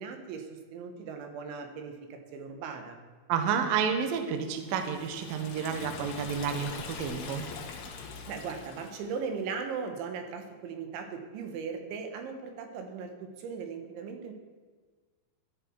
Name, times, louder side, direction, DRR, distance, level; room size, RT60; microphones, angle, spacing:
voice 1, 0.0-3.0 8.3-14.3, right 5 dB, 85° right, 5 dB, 3.9 m, -38 dB
voice 2, 3.3-7.5, right 7 dB, 65° right, 6 dB, 2.5 m, -30 dB
Liquid, 4.5-9.2, left 5 dB, 70° left, 3.6 m, -43 dB
14.5 x 12.5 x 4.7 m, 1.5 s
omnidirectional pair, 5.2 m